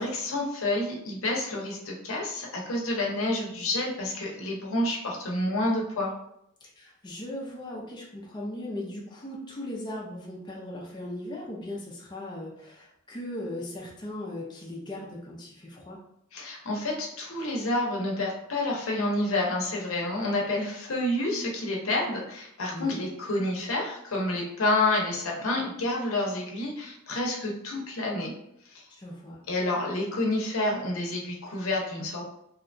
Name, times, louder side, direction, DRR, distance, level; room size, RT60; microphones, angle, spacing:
voice 1, 0.0-6.1 16.3-28.3 28.7-28.8 29.5-32.3, left 2 dB, 80° left, -1 dB, 0.7 m, -29 dB
voice 2, 6.6-16.0 22.7-23.0 29.0-29.4, left 1 dB, 20° left, -3 dB, 0.5 m, -38 dB
2.8 x 2.2 x 2.5 m, 0.75 s
head